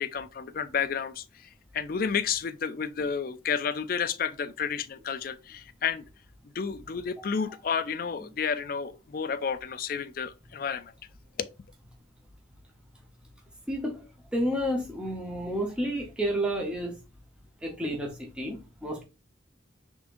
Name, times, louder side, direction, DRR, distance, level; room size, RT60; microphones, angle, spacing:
voice 1, 0.0-6.1 6.5-10.9 11.4-11.5, left 6 dB, 45° left, 0.4 m, -31 dB
voice 2, 13.7-17.0 17.6-19.0, equal, 5° right, 0.9 m, -31 dB
5.0 x 3.6 x 2.6 m
head